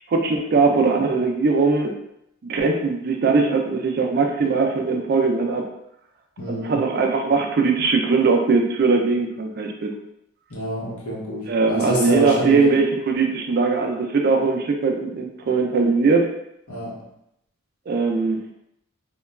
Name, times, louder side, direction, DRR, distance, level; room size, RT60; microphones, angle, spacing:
voice 1, 0.1-1.9 2.5-5.7 6.5-9.9 11.5-16.3 17.9-18.4, right 4 dB, 45° right, 3 dB, 0.3 m, -20 dB
voice 2, 6.4-6.8 10.5-12.6 16.7-17.0, equal, 85° left, -3 dB, 0.8 m, -27 dB
2.9 x 2.2 x 2.3 m, 0.78 s
head